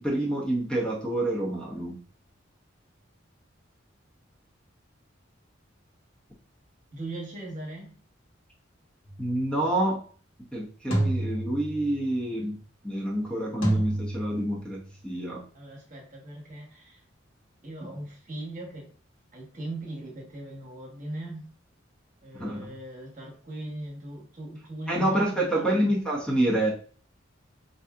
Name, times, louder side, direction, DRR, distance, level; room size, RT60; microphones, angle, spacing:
voice 1, 0.0-2.0 9.2-10.0 10.5-12.6 12.8-15.4 22.3-22.7 24.9-26.7, right 1 dB, 5° left, -4 dB, 0.8 m, -27 dB
voice 2, 6.9-8.0 15.5-17.0 17.6-18.9 19.3-21.5 22.2-25.7, right 1 dB, 40° right, -1 dB, 1.1 m, -39 dB
sound 1, 9.1-9.4 10.9-12.1 13.6-14.8, right 1 dB, 85° left, 1.2 m, -29 dB
4.7 x 2.7 x 2.3 m, 0.42 s
head